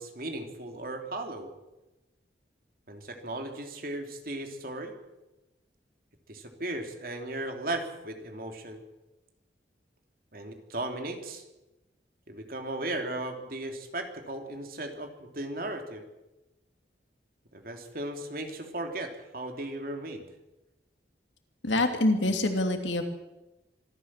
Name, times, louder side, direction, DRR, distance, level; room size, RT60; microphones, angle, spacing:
voice 1, 0.0-1.5 2.9-4.9 6.3-8.8 10.3-11.4 12.3-16.0 17.5-20.3, right 2 dB, 50° right, 5 dB, 3.0 m, -36 dB
voice 2, 21.6-23.0, left 2 dB, 85° left, 5 dB, 2.9 m, -25 dB
25.0 x 14.0 x 7.5 m, 1.0 s
head